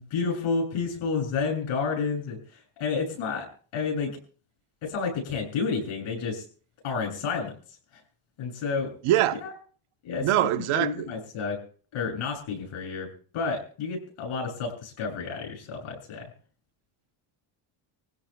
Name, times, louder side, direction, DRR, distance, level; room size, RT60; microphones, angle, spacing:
voice 1, 0.0-3.5 3.7-4.2 4.8-6.4 6.8-7.5 8.4-8.9 9.4-9.5 10.0-10.3 10.6-11.6 11.9-13.1 13.3-16.3, left 5 dB, 80° left, 7.7 m, -30 dB
voice 2, 9.0-9.4 10.2-11.1, right 13 dB, 85° right, 1.1 m, -23 dB
26.0 x 16.5 x 2.3 m
cardioid pair, 140°, 49 cm